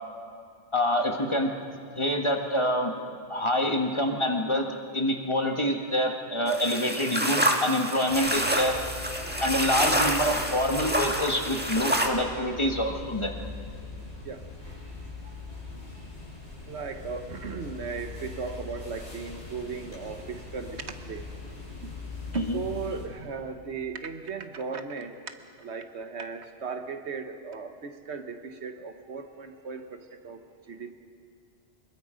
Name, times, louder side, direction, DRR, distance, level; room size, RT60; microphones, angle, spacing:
voice 1, 0.7-1.5 1.9-2.9 3.3-4.7 4.9-8.8 9.4-13.3 22.3-22.6, equal, 25° left, 2 dB, 1.5 m, -26 dB
sound 1, 6.5-12.1, right 1 dB, 10° right, 1.5 m, -28 dB
sound 2, 8.1-23.1, left 3 dB, 75° left, 5.5 m, -41 dB
voice 2, 16.7-21.4 21.8-21.9 22.3-25.2 25.6-30.9, right 5 dB, 80° right, 7 dB, 1.4 m, -37 dB
24.0 x 21.5 x 5.1 m, 2.3 s
omnidirectional pair, 1.1 m